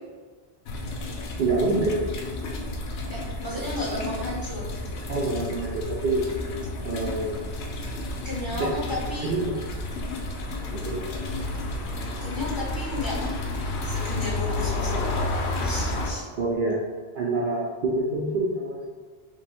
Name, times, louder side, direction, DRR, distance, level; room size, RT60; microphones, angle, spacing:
sound 1, 0.7-16.1, left 2 dB, 85° left, 0.9 m, -31 dB
voice 1, 1.4-1.9 5.1-6.2 6.8-7.5 8.6-8.7 9.2-9.6 10.7-11.0 16.4-16.8 17.2-18.9, right 2 dB, 60° right, -3 dB, 0.7 m, -26 dB
voice 2, 3.1-4.7 8.2-9.3 12.2-13.2 13.8-15.1 15.6-16.2, left 1 dB, 20° left, -8 dB, 1.2 m, -33 dB
4.9 x 2.3 x 3.4 m, 1.5 s
omnidirectional pair, 1.1 m